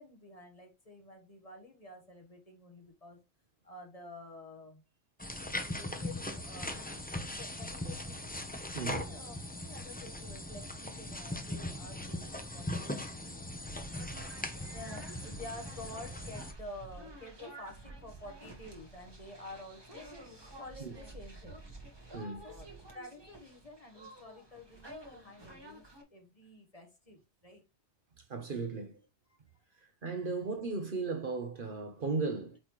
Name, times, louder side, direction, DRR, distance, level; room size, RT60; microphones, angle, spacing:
voice 1, 0.0-3.2 3.6-4.8 5.7-8.3 8.7-14.1 14.7-20.1 20.6-21.6 22.4-27.6 29.7-29.8, left 2 dB, 30° left, 1.4 m, -50 dB
sound 1, 5.2-16.5, left 1 dB, 10° left, 0.6 m, -40 dB
sound 2, 13.8-26.0, right 2 dB, 20° right, 1.7 m, -50 dB
voice 2, 22.1-22.4 28.3-29.0 30.0-32.6, right 4 dB, 50° right, 1.0 m, -36 dB
8.7 x 4.1 x 3.1 m
omnidirectional pair, 1.2 m